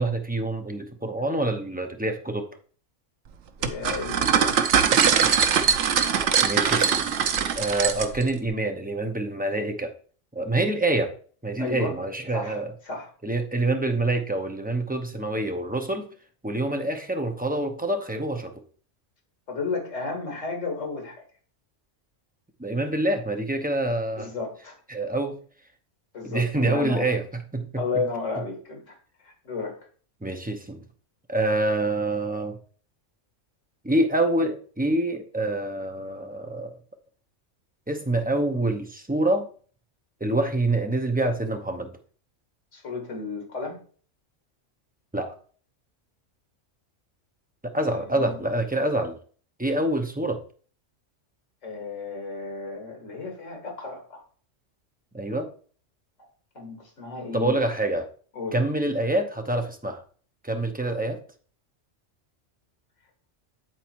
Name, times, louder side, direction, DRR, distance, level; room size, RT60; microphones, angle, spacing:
voice 1, 0.0-2.5 6.4-7.1 7.5-9.9 10.3-11.1 11.4-12.7 13.2-16.1 16.4-18.5 22.6-24.3 24.9-25.4 26.2-27.8 30.2-30.8 31.3-32.6 33.8-36.8 37.9-39.5 40.2-41.9 45.1-45.3 47.6-49.2 49.6-50.4 55.1-55.5 57.3-58.1 58.5-60.0 60.4-61.2, right 2 dB, 10° right, 4 dB, 0.7 m, -26 dB
voice 2, 3.6-4.6 11.6-12.0 12.3-13.1 19.5-21.2 24.2-24.8 26.1-27.1 27.8-29.0 29.2-29.9 42.7-43.8 47.8-48.4 51.6-54.2 56.2-56.3 56.5-57.5 58.3-58.6, left 4 dB, 80° left, 2 dB, 2.5 m, -33 dB
sound 1, 3.6-8.3, right 7 dB, 75° right, 1.0 m, -22 dB
8.9 x 4.1 x 4.6 m, 0.44 s
omnidirectional pair, 1.3 m